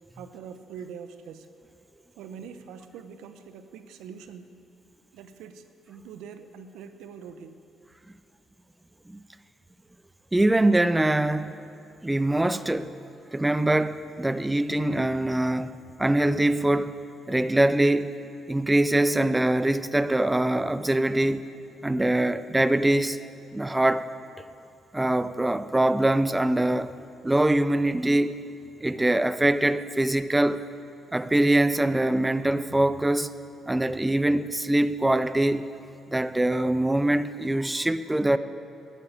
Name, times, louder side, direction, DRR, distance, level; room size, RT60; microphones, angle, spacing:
voice 1, 0.2-1.5 2.1-4.5 5.1-7.6, right 7 dB, 85° right, 0.8 m, -43 dB
voice 2, 10.3-11.5 12.0-12.9 13.3-15.7 16.0-16.9 17.3-18.1 18.5-21.5 21.8-23.2 23.5-24.1 24.9-26.9 27.2-28.4 28.8-30.6 31.1-33.3 33.7-35.7 36.1-38.4, right 1 dB, 10° right, 0.5 m, -23 dB
11.5 x 8.4 x 8.5 m
cardioid pair, 80°, 0 cm